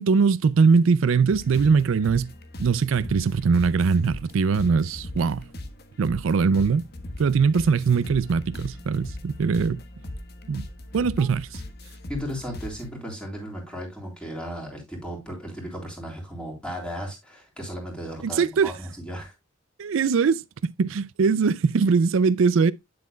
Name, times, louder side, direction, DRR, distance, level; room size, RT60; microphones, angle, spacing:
voice 1, 0.0-2.3 2.6-5.4 6.0-6.8 7.2-9.8 10.5-10.6 10.9-11.6 18.2-18.7 19.8-22.7, right 5 dB, 75° right, 0.4 m, -21 dB
sound 1, 1.3-12.9, left 1 dB, 50° left, 1.3 m, -39 dB
voice 2, 12.1-19.3, equal, 5° left, 3.5 m, -35 dB
9.6 x 7.6 x 2.2 m
head